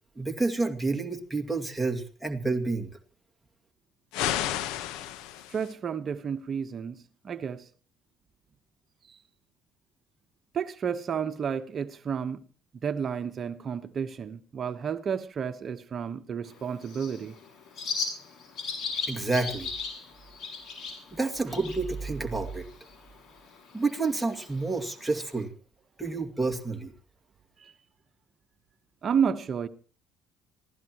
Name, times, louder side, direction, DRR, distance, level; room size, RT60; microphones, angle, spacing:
voice 1, 0.2-2.9 19.1-19.7 21.1-22.7 23.7-25.5 26.0-26.9, right 3 dB, 5° right, 2.2 m, -29 dB
sound 1, 4.1-5.7, left 12 dB, 80° left, 1.1 m, -31 dB
voice 2, 5.5-7.7 9.1-9.2 10.5-12.4 12.8-17.3 27.6-27.7 29.0-29.7, right 7 dB, 45° right, 1.1 m, -31 dB
Bird, 16.5-25.4, left 4 dB, 55° left, 6.4 m, -39 dB
26.0 x 16.0 x 3.0 m
supercardioid pair, 80°, 0 cm